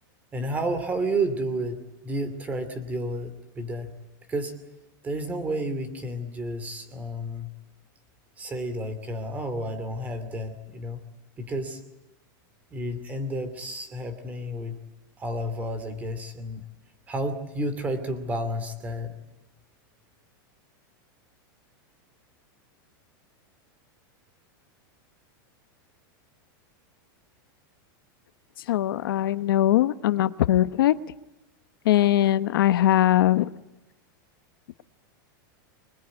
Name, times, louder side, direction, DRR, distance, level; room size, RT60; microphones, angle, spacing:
voice 1, 0.3-1.8 2.0-3.9 4.3-4.5 5.0-7.5 8.4-11.0 11.4-11.8 12.7-14.8 15.2-16.6 17.1-19.1, right 1 dB, 15° right, 11 dB, 2.7 m, -31 dB
voice 2, 28.7-30.9 31.8-33.5, left 13 dB, 85° left, 12 dB, 1.0 m, -21 dB
25.5 x 20.5 x 9.7 m, 0.94 s
supercardioid pair, 170°, 11 cm